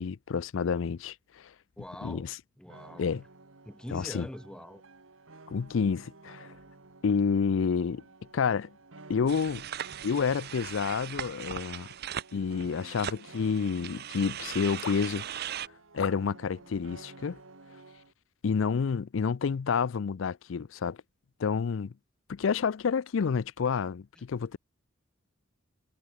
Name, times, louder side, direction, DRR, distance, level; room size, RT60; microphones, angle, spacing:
voice 1, 0.0-1.5 2.0-2.3 3.0-3.2 3.9-4.3 5.5-6.5 7.0-8.0 8.3-8.7 9.1-9.7 10.0-11.9 12.3-15.6 15.9-17.4 18.4-21.0 21.4-21.9 22.3-24.6, left 6 dB, 70° left, 0.4 m, -29 dB
voice 2, 1.8-2.3 2.6-3.1 3.7-4.8 24.2-24.3, equal, 5° left, 0.6 m, -44 dB
sound 1, 2.7-18.1, right 3 dB, 75° right, 1.7 m, -53 dB
sound 2, 9.3-15.7, right 9 dB, 50° right, 0.6 m, -39 dB
head